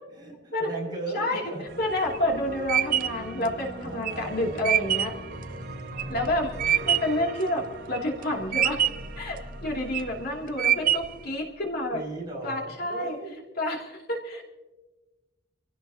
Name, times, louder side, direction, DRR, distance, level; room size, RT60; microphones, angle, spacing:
voice 1, 0.1-1.7 2.0-2.2 3.8-4.8 5.9-6.9 11.9-13.4, right 2 dB, 25° right, -3 dB, 6.6 m, -38 dB
sound 1, 1.7-11.7, right 1 dB, 75° right, 4.1 m, -40 dB
voice 2, 1.8-5.1 6.1-8.8 9.2-12.0 12.4-13.2 13.6-14.4, left 1 dB, 55° left, -1 dB, 2.8 m, -29 dB
sound 2, 1.8-7.2 7.7-8.2 8.5-9.2 9.7-10.2 10.6-11.3, right 10 dB, 50° right, 0.5 m, -25 dB
27.0 x 16.5 x 2.9 m, 1.2 s
head